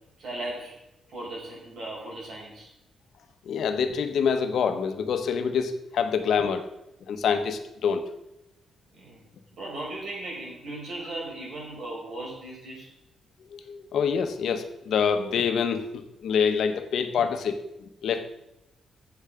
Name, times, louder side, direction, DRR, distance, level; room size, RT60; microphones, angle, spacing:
voice 1, 0.2-0.8 1.1-2.7 8.9-12.9, right 2 dB, 50° right, -2 dB, 5.5 m, -37 dB
voice 2, 3.4-6.7 7.1-8.0 13.5-17.6 18.0-18.3, left 6 dB, 65° left, 8 dB, 1.2 m, -26 dB
15.5 x 7.3 x 5.1 m, 0.90 s
wide cardioid pair, 175°, 0 cm